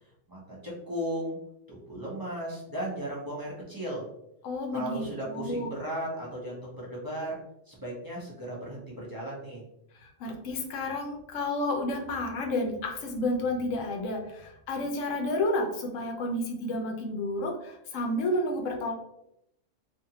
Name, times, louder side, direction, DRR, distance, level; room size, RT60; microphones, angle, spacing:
voice 1, 0.3-1.4 1.7-4.0 4.7-7.4 7.7-9.6, right 1 dB, 25° right, -6 dB, 0.6 m, -36 dB
voice 2, 4.4-5.7 10.0-18.9, left 1 dB, 75° left, 3 dB, 1.0 m, -31 dB
2.7 x 2.5 x 2.8 m, 0.81 s
omnidirectional pair, 1.4 m